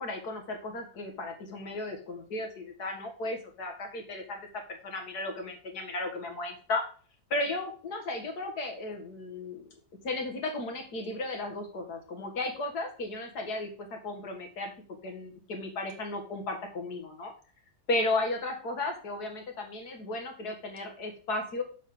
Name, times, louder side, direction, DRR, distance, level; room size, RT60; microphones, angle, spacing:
voice 1, 0.0-6.8 7.3-9.6 10.0-14.7 15.0-17.3 17.9-21.6, left 2 dB, 85° left, 3 dB, 2.2 m, -34 dB
7.3 x 6.7 x 3.6 m, 0.41 s
omnidirectional pair, 1.7 m